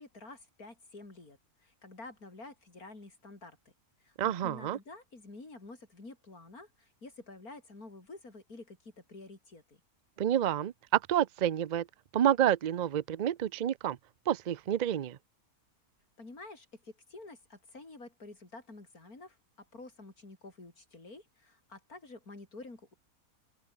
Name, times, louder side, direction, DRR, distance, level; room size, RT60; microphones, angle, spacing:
voice 1, 0.0-3.6 4.0-9.8 16.2-22.9, left 2 dB, 75° left, 5.4 m, -49 dB
voice 2, 4.2-4.8 10.2-11.9 12.1-14.0 14.3-15.2, right 10 dB, 70° right, 0.4 m, -29 dB
open air
omnidirectional pair, 1.5 m